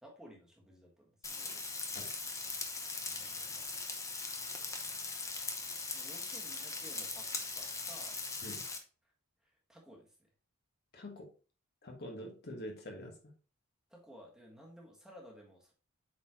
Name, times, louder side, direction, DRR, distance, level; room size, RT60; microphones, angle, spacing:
voice 1, 0.0-1.8 3.0-3.8 4.4-5.4 5.9-8.2 8.6-8.7 9.4-10.3 13.9-15.7, equal, 5° right, -2 dB, 1.5 m, -57 dB
Frying (food), 1.2-8.8, left 3 dB, 15° left, 0.8 m, -40 dB
voice 2, 10.9-11.3 11.8-13.1, equal, 50° left, 1 dB, 1.5 m, -45 dB
8.1 x 4.2 x 2.9 m, 0.35 s
head